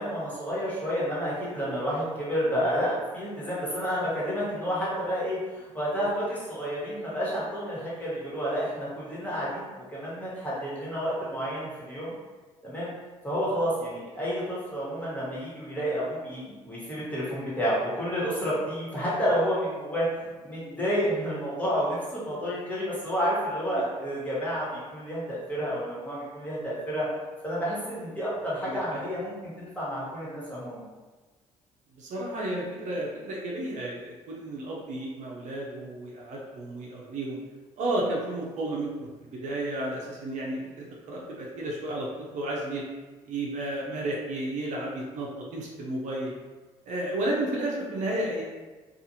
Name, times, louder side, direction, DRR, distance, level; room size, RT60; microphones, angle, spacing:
voice 1, 0.0-12.1 12.6-12.9 13.2-20.1 20.4-27.1 27.4-30.8, equal, 10° left, -8 dB, 1.4 m, -30 dB
voice 2, 28.6-29.0 32.0-37.4 37.8-42.1 42.3-42.8 43.2-46.3 46.9-48.4, right 1 dB, 65° right, -3 dB, 0.6 m, -32 dB
2.5 x 2.4 x 2.8 m, 1.3 s
supercardioid pair, 70°, 13 cm